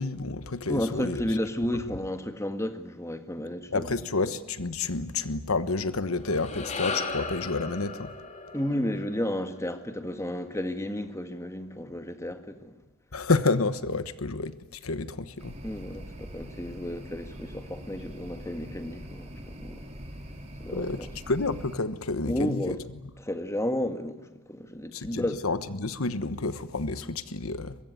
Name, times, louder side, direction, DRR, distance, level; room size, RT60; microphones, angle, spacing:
voice 1, 0.0-1.2 3.7-8.1 13.1-15.6 20.7-22.8 24.9-27.8, left 3 dB, 85° left, 1.2 m, -29 dB
voice 2, 0.7-3.9 8.5-12.7 15.6-19.8 20.6-21.1 22.3-22.8 23.2-25.4, left 1 dB, 15° left, 1.7 m, -32 dB
sound 1, 6.1-10.6, left 4 dB, 35° left, 2.9 m, -37 dB
sound 2, 15.4-21.8, equal, 30° right, 3.7 m, -43 dB
23.0 x 23.0 x 9.3 m
head